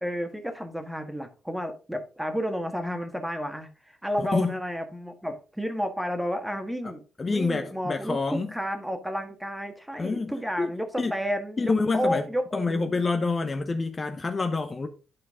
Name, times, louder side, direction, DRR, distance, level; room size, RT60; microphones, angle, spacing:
voice 1, 0.0-3.7 4.0-12.8, equal, 5° right, 1.6 m, -31 dB
voice 2, 4.2-4.5 6.8-6.9 7.2-8.5 10.0-10.7 11.0-11.1 11.6-12.2 12.5-14.9, left 3 dB, 30° left, 0.7 m, -27 dB
11.0 x 4.5 x 3.7 m
cardioid pair, 90°, 0 cm